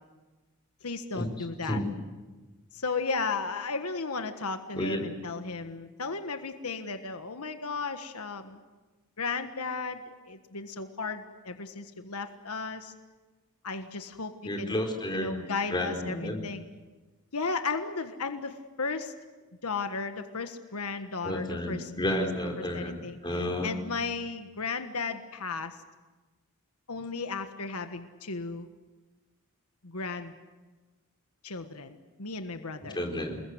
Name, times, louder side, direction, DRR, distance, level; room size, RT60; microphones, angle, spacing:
voice 1, 0.8-1.8 2.7-8.6 9.2-12.9 13.6-14.7 15.1-16.6 17.3-19.1 19.6-22.3 22.6-23.2 23.6-25.8 26.9-28.7 29.8-30.3 31.4-33.0, left 4 dB, 85° left, 7 dB, 1.5 m, -35 dB
voice 2, 4.7-5.0 14.4-15.4 15.7-16.4 21.2-23.7 32.9-33.4, left 1 dB, 20° left, 2 dB, 4.4 m, -31 dB
28.0 x 21.0 x 8.0 m, 1.3 s
head